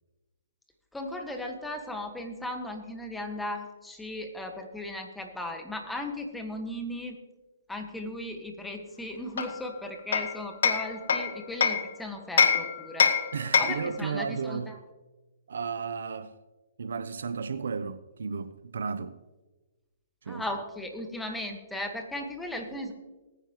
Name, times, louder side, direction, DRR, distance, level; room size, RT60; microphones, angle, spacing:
voice 1, 0.9-7.2 7.7-13.2 13.6-14.8 20.3-22.9, left 1 dB, 5° left, 1.6 m, -37 dB
Hammer, 9.4-11.9 12.4-13.9, left 6 dB, 70° left, 1.3 m, -25 dB
voice 2, 13.3-14.7 15.5-16.3 16.8-19.2 20.2-20.4, right 5 dB, 80° right, 0.8 m, -34 dB
20.5 x 9.8 x 3.1 m
hypercardioid pair, 135°, 0 cm